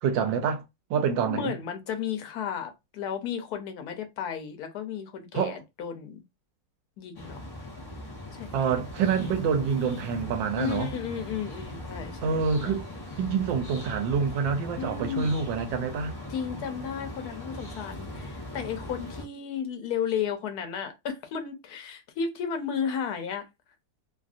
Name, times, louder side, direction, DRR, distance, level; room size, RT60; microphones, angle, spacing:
voice 1, 0.0-0.6 0.9-1.5 5.3-5.6 8.5-10.9 12.2-12.9 13.2-16.2, right 6 dB, 90° right, 1.3 m, -27 dB
voice 2, 1.3-6.2 7.0-7.4 8.3-8.7 10.6-12.7 14.8-15.3 16.3-23.5, left 7 dB, 65° left, 1.1 m, -33 dB
sound 1, 7.1-19.2, left 1 dB, 35° left, 0.4 m, -40 dB
3.2 x 2.6 x 2.4 m
omnidirectional pair, 2.0 m